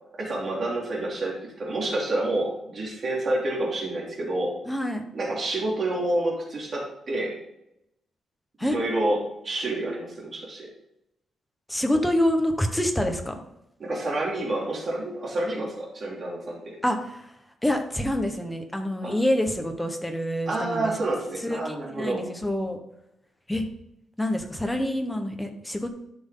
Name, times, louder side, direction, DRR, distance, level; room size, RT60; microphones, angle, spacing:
voice 1, 0.2-4.6 5.1-7.3 8.6-9.2 9.4-10.7 13.8-16.8 19.0-19.1 20.5-22.2, right 2 dB, 40° right, -3 dB, 3.1 m, -28 dB
voice 2, 4.7-5.0 8.6-8.8 11.7-13.4 16.8-17.3 17.6-20.9 21.4-22.8 23.5-23.7 24.2-25.9, left 1 dB, 5° left, 4 dB, 1.1 m, -26 dB
12.0 x 6.1 x 3.9 m, 0.82 s
wide cardioid pair, 155°, 0 cm